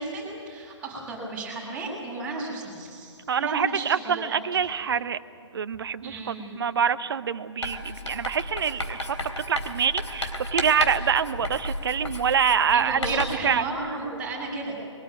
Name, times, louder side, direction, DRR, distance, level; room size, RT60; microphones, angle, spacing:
voice 1, 0.0-4.4 6.0-6.6 12.7-14.8, right 2 dB, 5° right, -6 dB, 6.6 m, -34 dB
voice 2, 3.3-5.2 5.5-9.2 9.5-13.6, right 7 dB, 50° right, 14 dB, 0.8 m, -25 dB
Writing, 7.6-13.5, left 1 dB, 70° left, 3.5 m, -33 dB
22.5 x 19.0 x 9.1 m, 2.4 s
figure-of-eight pair, 135°, 16 cm